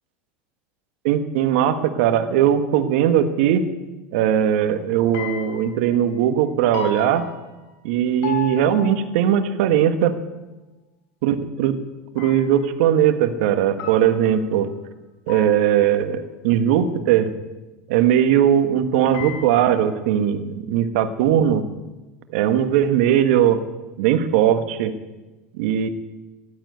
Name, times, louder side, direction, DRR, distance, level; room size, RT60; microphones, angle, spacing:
voice 1, 1.0-3.6 4.1-7.2 7.8-10.1 11.2-11.8 12.1-14.7 15.3-17.3 17.9-21.6 22.3-23.6 24.0-24.9 25.5-25.9, right 10 dB, 75° right, 9 dB, 1.6 m, -19 dB
sound 1, 5.1-6.0 6.7-7.9 8.2-9.3 12.2-12.8 13.8-14.5 15.3-16.0 19.1-20.0, left 7 dB, 60° left, 3.9 m, -35 dB
15.0 x 12.0 x 8.0 m, 1.1 s
supercardioid pair, 105°, 6 cm